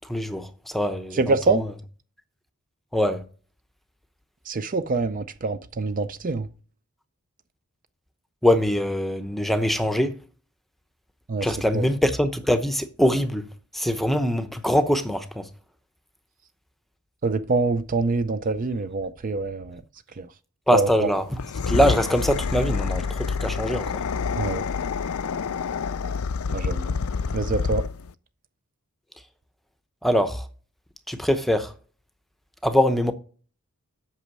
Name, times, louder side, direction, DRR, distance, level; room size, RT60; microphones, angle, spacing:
voice 1, 0.1-1.7 2.9-3.2 8.4-10.2 11.4-13.4 13.7-15.5 20.7-21.4 21.7-23.9 30.0-30.4 31.1-31.7 32.6-33.1, equal, ahead, 0.8 m, -23 dB
voice 2, 1.1-1.6 4.5-6.5 11.3-11.5 11.7-11.9 17.2-19.8 20.2-20.3 20.7-21.1 24.4-24.6 26.5-26.9 27.3-27.8, right 3 dB, 35° right, 0.5 m, -25 dB
sound 1, 21.3-28.1, left 5 dB, 70° left, 0.5 m, -27 dB
8.3 x 6.1 x 6.1 m
head